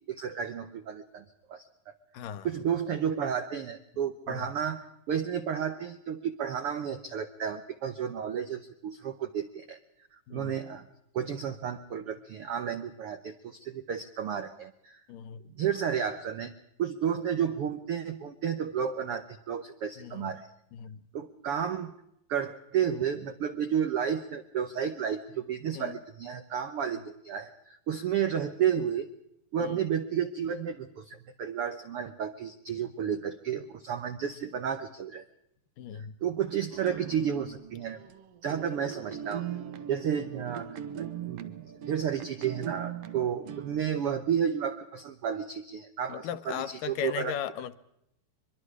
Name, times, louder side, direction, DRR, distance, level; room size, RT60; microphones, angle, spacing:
voice 1, 0.1-1.2 1.5-1.7 2.4-9.8 10.3-10.9 11.1-15.0 15.6-16.5 16.8-20.5 21.1-21.9 22.3-29.1 29.5-35.2 35.9-38.0 38.4-39.4 39.9-47.3, right 8 dB, 85° right, 8 dB, 1.2 m, -32 dB
voice 2, 2.1-2.5 4.3-4.5 10.3-10.6 15.1-15.4 20.0-20.3 20.7-21.0 25.7-26.0 29.6-29.8 35.8-36.1 46.1-47.7, left 9 dB, 75° left, 11 dB, 2.4 m, -37 dB
sound 1, 36.7-44.4, right 9 dB, 70° right, 1.5 m, -40 dB
23.5 x 23.0 x 4.8 m, 0.78 s
omnidirectional pair, 4.0 m